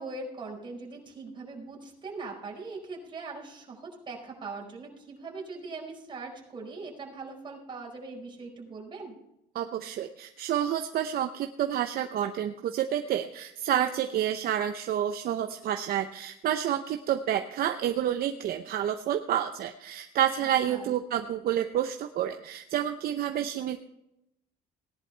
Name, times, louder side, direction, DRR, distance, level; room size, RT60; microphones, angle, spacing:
voice 1, 0.0-9.2 20.6-20.9, right 3 dB, 30° right, -1 dB, 4.7 m, -41 dB
voice 2, 9.5-23.8, right 10 dB, 65° right, 7 dB, 0.8 m, -29 dB
18.0 x 11.0 x 3.4 m, 0.84 s
cardioid pair, 110°, 17 cm